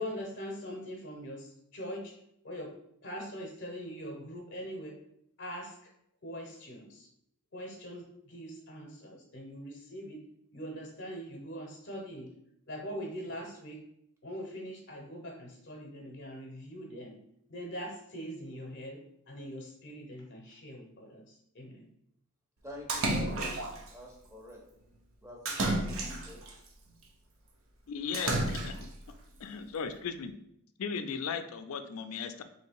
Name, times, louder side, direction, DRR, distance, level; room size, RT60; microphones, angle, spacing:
voice 1, 0.0-2.1 2.4-2.7 3.0-5.0 5.4-5.8 6.2-7.1 7.5-10.2 10.5-12.3 12.7-13.8 14.2-17.2 17.5-19.0 19.3-21.9, equal, 55° left, 0 dB, 0.8 m, -42 dB
voice 2, 22.6-23.5 23.9-24.6 25.2-26.4, left 1 dB, 15° right, -1 dB, 0.8 m, -47 dB
Splash splatter, 22.9-23.9 25.5-26.5 28.1-29.0, right 2 dB, 65° right, 0.7 m, -31 dB
voice 3, 27.9-28.9 29.4-30.3 30.8-32.4, left 6 dB, 75° left, 9 dB, 0.4 m, -37 dB
3.2 x 2.8 x 4.4 m, 0.76 s
head